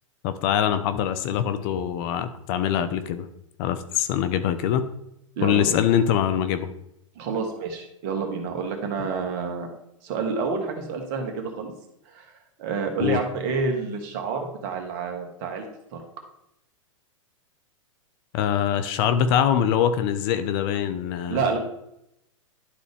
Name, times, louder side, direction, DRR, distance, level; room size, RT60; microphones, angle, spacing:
voice 1, 0.2-3.3 3.6-4.8 5.4-6.7 13.0-13.2 18.3-21.4, left 9 dB, 45° left, 11 dB, 0.7 m, -23 dB
voice 2, 5.4-5.8 7.2-9.7 10.0-11.7 12.1-12.3 12.6-16.0 21.3-21.6, right 5 dB, 45° right, 4 dB, 1.8 m, -28 dB
11.5 x 4.0 x 3.5 m, 0.79 s
hypercardioid pair, 115°, 17 cm